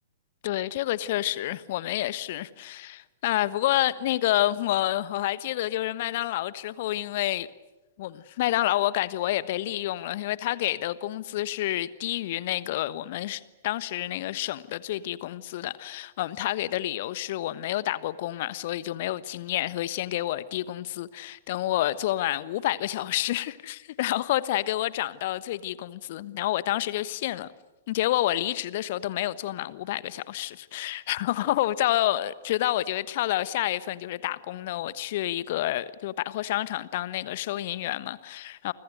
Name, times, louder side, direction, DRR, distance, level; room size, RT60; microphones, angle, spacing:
voice 1, 0.4-7.5 8.0-27.5 27.9-38.7, left 14 dB, 45° left, 1.2 m, -29 dB
30.0 x 24.5 x 6.5 m
figure-of-eight pair, 110°, 0 cm